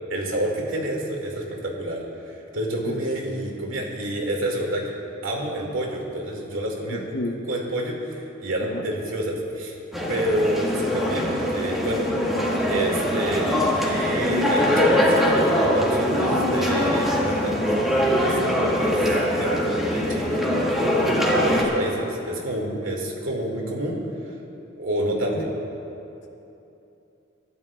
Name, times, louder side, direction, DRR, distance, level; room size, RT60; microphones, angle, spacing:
voice 1, 0.1-4.9 5.2-7.0 7.5-9.8 10.1-12.1 12.7-13.5 13.8-24.0 24.8-25.5, right 1 dB, 85° right, -1 dB, 2.4 m, -29 dB
voice 2, 6.9-7.4 8.7-8.8 21.1-21.3 25.4-25.5, left 2 dB, 60° left, 1 dB, 1.0 m, -31 dB
sound 1, 9.9-21.6, equal, ahead, 2.0 m, -22 dB
27.0 x 12.5 x 2.4 m, 2.9 s
head